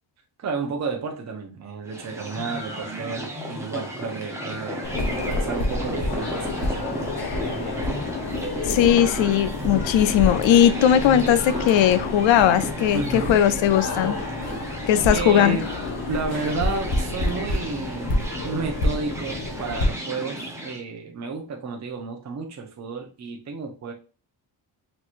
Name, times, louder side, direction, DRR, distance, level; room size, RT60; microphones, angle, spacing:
voice 1, 0.4-7.8 12.9-13.4 15.1-15.6 16.1-23.9, right 4 dB, 35° right, 0.7 m, -32 dB
sound 1, 1.9-20.8, equal, 5° right, 0.8 m, -34 dB
sound 2, 4.8-19.9, left 2 dB, 55° left, 1.1 m, -29 dB
voice 2, 8.7-14.2 14.9-15.6, left 10 dB, 75° left, 0.6 m, -18 dB
4.4 x 2.9 x 2.5 m
wide cardioid pair, 135°, 46 cm